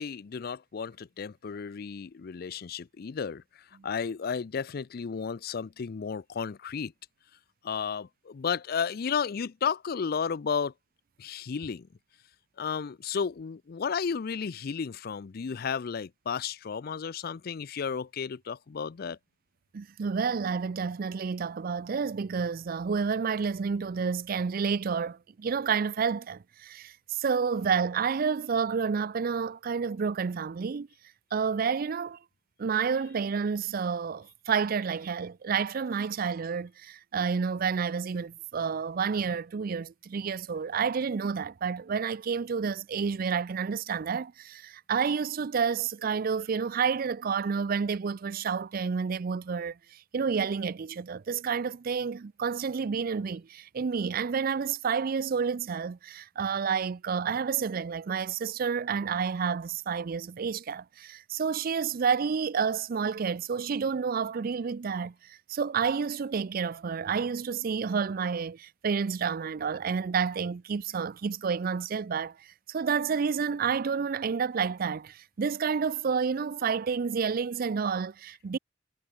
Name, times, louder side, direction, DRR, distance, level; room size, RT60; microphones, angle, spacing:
voice 1, 0.0-3.4 3.8-6.9 7.6-10.7 11.2-11.9 12.6-19.2, left 6 dB, 55° left, 0.4 m, -33 dB
voice 2, 19.7-30.9 31.3-32.2 32.6-78.6, right 6 dB, 50° right, 0.4 m, -30 dB
head